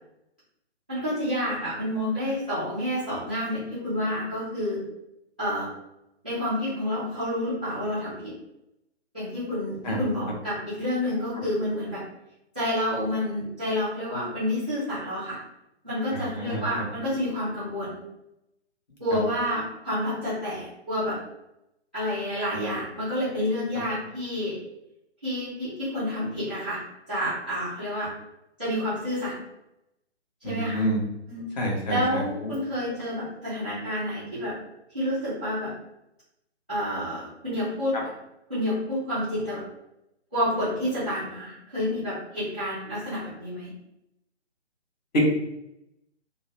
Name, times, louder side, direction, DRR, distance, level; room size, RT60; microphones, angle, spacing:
voice 1, 0.9-4.8 5.4-5.7 6.2-8.3 9.1-12.0 12.5-15.4 15.8-18.0 19.0-21.2 21.9-24.5 25.2-26.8 27.1-28.1 28.6-29.3 30.4-30.8 31.3-31.4 31.9-34.5 34.9-35.7 36.7-38.0 38.5-39.6 40.3-43.7, left 1 dB, 10° right, -15 dB, 0.4 m, -29 dB
voice 2, 16.1-16.6 30.4-31.0 31.6-32.2 45.1-45.2, right 1 dB, 40° left, -2 dB, 1.0 m, -27 dB
2.8 x 2.1 x 4.0 m, 0.85 s
figure-of-eight pair, 140°, 35 cm